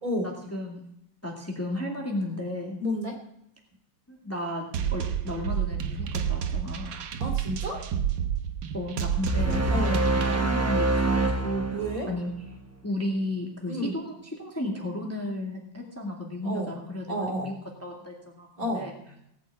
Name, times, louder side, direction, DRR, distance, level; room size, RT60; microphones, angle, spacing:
voice 1, 0.2-0.8 1.2-2.8 4.1-6.9 8.7-11.8 12.1-12.3 12.8-17.6 17.8-18.9, left 1 dB, 10° left, 0 dB, 1.9 m, -34 dB
voice 2, 2.8-3.2 7.2-7.9 9.7-10.1 11.7-12.1 13.7-13.9 16.4-16.8 17.1-17.5 18.6-18.9, equal, 50° right, 2 dB, 3.4 m, -30 dB
sound 1, 4.7-10.4, right 9 dB, 75° right, 1.6 m, -30 dB
sound 2, 9.3-12.6, right 2 dB, 20° right, 0.4 m, -25 dB
18.0 x 6.3 x 8.3 m, 0.76 s
omnidirectional pair, 1.9 m